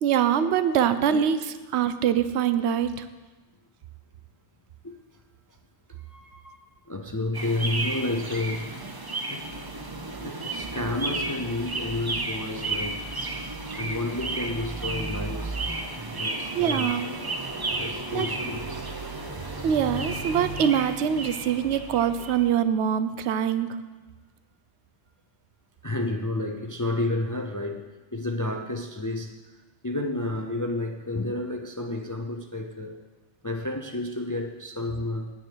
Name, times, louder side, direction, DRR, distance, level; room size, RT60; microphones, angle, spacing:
voice 1, 0.0-1.5 1.7-3.1 16.5-17.1 18.1-18.3 19.6-23.7, right 9 dB, 70° right, 12 dB, 0.9 m, -24 dB
voice 2, 6.1-6.6 6.9-8.7 9.3-9.5 10.2-13.1 13.8-15.6 16.1-16.9 17.8-19.1 25.8-27.8 28.1-29.3 29.8-33.0 33.4-35.3, left 2 dB, 30° left, 4 dB, 0.3 m, -31 dB
sound 1, 7.3-22.5, right 2 dB, 25° right, 0.6 m, -33 dB
9.5 x 9.4 x 4.5 m, 1.2 s
omnidirectional pair, 1.2 m